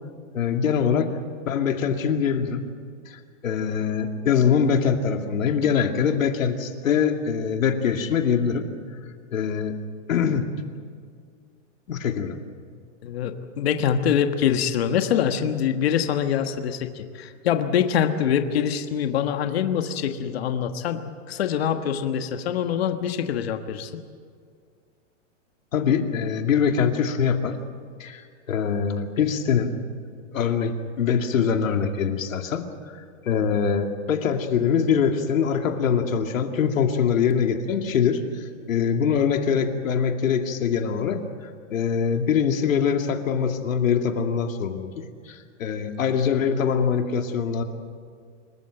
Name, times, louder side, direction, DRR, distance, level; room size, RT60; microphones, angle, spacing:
voice 1, 0.3-1.1 1.5-2.6 3.1-8.7 9.3-9.8 10.1-10.5 11.9-12.4 25.7-27.6 28.0-29.7 30.3-41.2 41.7-47.6, left 7 dB, 90° left, 5 dB, 2.5 m, -23 dB
voice 2, 13.0-23.9, left 8 dB, 50° left, 7 dB, 1.4 m, -24 dB
26.0 x 15.0 x 9.1 m, 2.1 s
supercardioid pair, 180°, 39 cm